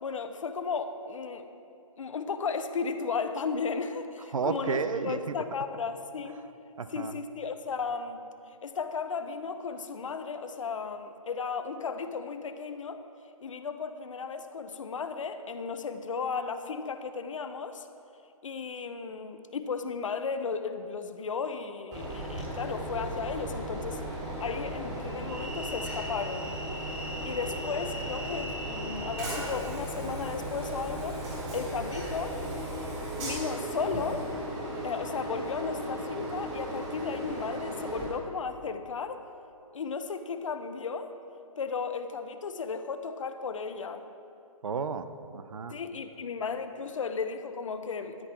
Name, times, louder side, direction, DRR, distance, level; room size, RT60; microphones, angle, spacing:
voice 1, 0.0-1.5 2.0-6.4 6.9-8.2 8.6-13.0 13.4-17.9 18.4-24.0 24.4-26.5 27.2-31.3 31.5-32.4 33.2-34.3 34.8-39.2 39.7-41.1 41.6-44.0 45.7-48.3, left 5 dB, 60° left, 9 dB, 0.9 m, -35 dB
voice 2, 4.3-5.4 6.8-7.1 44.6-45.7, right 5 dB, 65° right, 11 dB, 0.7 m, -32 dB
Train, 21.9-38.1, right 1 dB, 15° right, 3.3 m, -36 dB
14.0 x 10.5 x 4.4 m, 2.7 s
hypercardioid pair, 160°, 18 cm